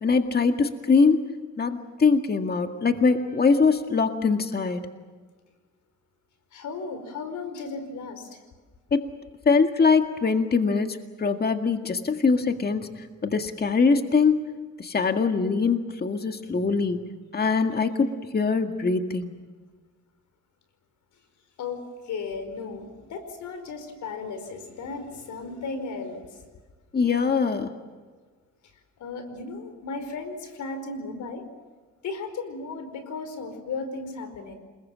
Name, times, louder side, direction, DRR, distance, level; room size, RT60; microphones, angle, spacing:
voice 1, 0.0-1.3 1.6-4.8 8.9-9.1 9.5-14.5 14.8-19.4 26.9-27.7, left 4 dB, 30° left, 6 dB, 1.9 m, -23 dB
voice 2, 6.5-8.4 21.6-26.4 29.0-31.4 32.0-34.5, left 4 dB, 75° left, 9 dB, 4.9 m, -35 dB
28.0 x 21.0 x 7.6 m, 1.4 s
cardioid pair, 90°, 30 cm